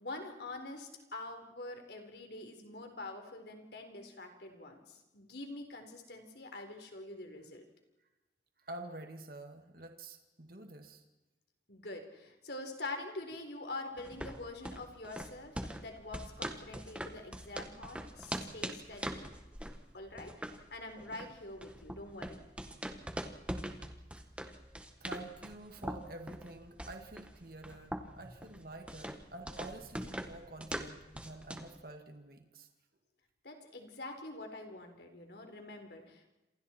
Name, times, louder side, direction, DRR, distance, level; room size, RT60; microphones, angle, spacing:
voice 1, 0.0-7.6 11.7-19.3 19.9-22.4 33.4-36.3, left 2 dB, 60° left, 4 dB, 4.0 m, -45 dB
voice 2, 8.6-11.0 25.0-32.7, right 2 dB, 55° right, 4 dB, 2.2 m, -48 dB
sound 1, 14.0-31.8, right 1 dB, 5° right, 1.5 m, -43 dB
28.0 x 27.5 x 4.5 m, 1.0 s
head